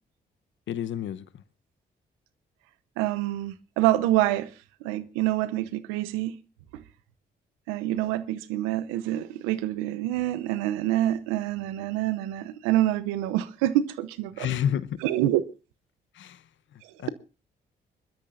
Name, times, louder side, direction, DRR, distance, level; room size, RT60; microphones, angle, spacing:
voice 1, 0.7-1.3 14.4-15.0 16.1-16.4 16.7-17.1, left 9 dB, 70° left, 0.9 m, -30 dB
voice 2, 3.0-4.5 4.8-6.3 6.7-6.8 7.7-14.5 15.0-15.4, right 14 dB, 90° right, 0.8 m, -26 dB
25.5 x 12.5 x 2.6 m
hypercardioid pair, 45°, 21 cm